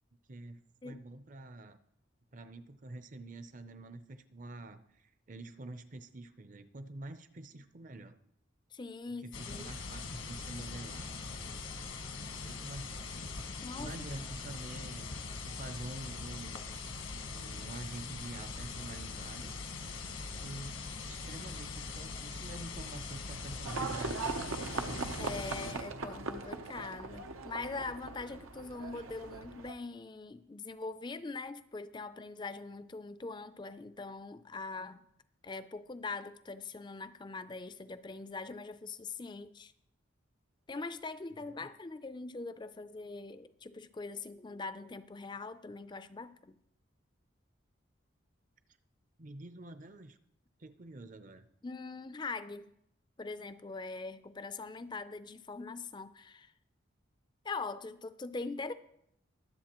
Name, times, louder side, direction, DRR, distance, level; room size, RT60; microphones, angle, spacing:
voice 1, 0.3-1.8 2.3-8.2 9.1-11.1 12.4-13.2 13.8-15.1 15.4-16.7 17.3-19.5 20.2-20.8 21.0-24.4 41.4-41.7 49.2-50.2 50.6-51.5, right 2 dB, 40° right, 0.6 m, -47 dB
voice 2, 8.7-9.8 13.6-14.0 14.5-14.6 25.2-35.1 35.4-39.7 40.7-46.6 51.6-52.7 53.2-56.5 57.4-58.7, left 3 dB, 20° left, 0.4 m, -42 dB
sound 1, 9.3-25.7, left 4 dB, 85° left, 1.4 m, -42 dB
Livestock farm animals working animals, 23.6-29.7, right 3 dB, 90° right, 0.8 m, -39 dB
22.5 x 7.8 x 3.0 m
head